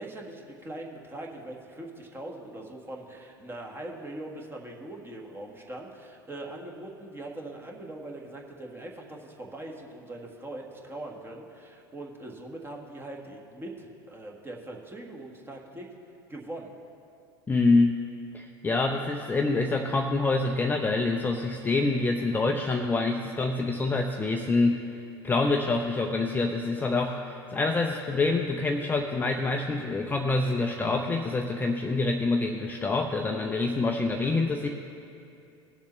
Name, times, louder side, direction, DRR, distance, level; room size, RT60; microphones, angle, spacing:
voice 1, 0.0-15.9 16.3-16.7, right 1 dB, 15° right, 0 dB, 1.5 m, -41 dB
voice 2, 17.5-17.9 18.3-34.7, left 3 dB, 15° left, 3 dB, 0.5 m, -26 dB
18.0 x 7.1 x 3.1 m, 2.6 s
figure-of-eight pair, 75°, 14 cm